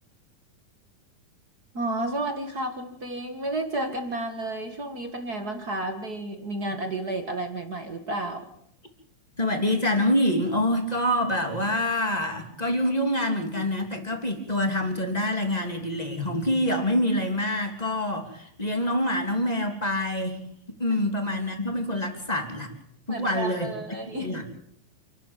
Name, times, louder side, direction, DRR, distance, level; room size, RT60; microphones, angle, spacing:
voice 1, 1.7-8.5 23.1-24.4, right 2 dB, 35° right, 5 dB, 1.9 m, -31 dB
voice 2, 9.4-20.4 20.8-22.7 23.1-23.7 24.1-24.4, left 1 dB, 10° left, 4 dB, 2.9 m, -26 dB
28.0 x 12.0 x 9.0 m, 0.73 s
omnidirectional pair, 3.7 m